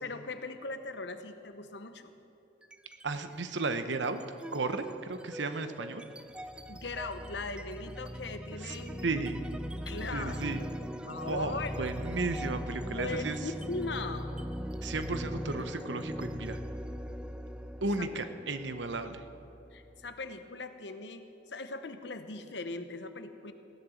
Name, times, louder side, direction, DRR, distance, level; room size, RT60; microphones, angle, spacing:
voice 1, 0.0-2.1 6.7-9.1 9.9-10.8 11.0-11.8 12.8-14.3 18.0-18.1 19.7-23.5, left 3 dB, 70° left, 9 dB, 1.0 m, -39 dB
sound 1, 2.6-3.1 3.5-20.1, equal, 5° right, 0.4 m, -40 dB
voice 2, 3.0-4.2 4.5-6.0 8.6-8.8 9.0-9.4 10.1-10.6 11.1-13.4 14.8-16.6 17.8-19.2, right 3 dB, 80° right, 9 dB, 0.9 m, -34 dB
16.0 x 11.0 x 7.2 m, 2.7 s
head